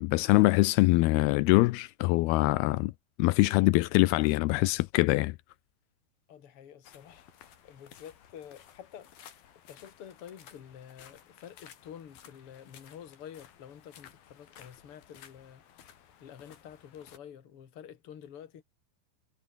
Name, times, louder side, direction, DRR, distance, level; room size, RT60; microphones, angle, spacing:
voice 1, 0.0-2.9 3.2-5.4, left 21 dB, 85° left, 2.5 m, -24 dB
voice 2, 6.3-7.3 7.6-18.6, left 9 dB, 40° left, 2.5 m, -49 dB
sound 1, 6.8-17.2, left 9 dB, 65° left, 4.1 m, -56 dB
omnidirectional pair, 4.6 m